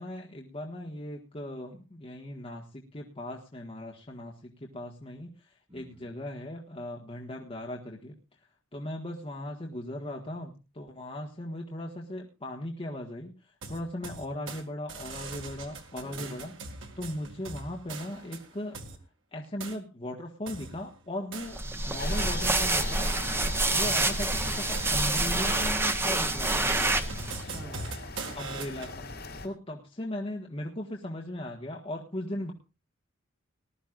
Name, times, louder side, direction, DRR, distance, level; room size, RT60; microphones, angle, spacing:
voice 1, 0.0-8.2 8.7-16.5 17.0-18.8 19.3-23.1 23.7-27.0 28.3-29.1 29.4-32.5, left 1 dB, 30° left, -1 dB, 1.5 m, -38 dB
voice 2, 5.7-6.1 16.0-16.7 27.1-28.2, right 1 dB, 30° right, -1 dB, 5.0 m, -49 dB
sound 1, 13.6-14.6 14.9-19.0 19.6-19.8 20.5-21.9 22.2-28.9, right 3 dB, 70° right, 2.2 m, -42 dB
sound 2, 21.5-27.4, right 2 dB, 10° right, 0.9 m, -27 dB
sound 3, 22.0-29.5, left 3 dB, 55° left, 5.2 m, -41 dB
20.0 x 12.5 x 2.5 m, 0.31 s
head